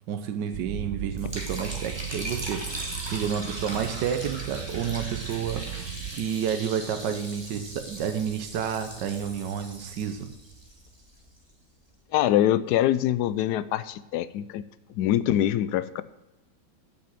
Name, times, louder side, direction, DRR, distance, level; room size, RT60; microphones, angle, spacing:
voice 1, 0.1-10.3, right 8 dB, 80° right, 7 dB, 1.4 m, -30 dB
sound 1, 0.5-6.1, right 9 dB, 65° right, 0.9 m, -37 dB
Liquid, 1.2-11.4, right 1 dB, 15° right, 1.7 m, -39 dB
voice 2, 12.1-14.6 15.0-16.0, left 12 dB, 75° left, 16 dB, 1.1 m, -24 dB
8.3 x 6.3 x 7.5 m, 1.0 s
omnidirectional pair, 1.9 m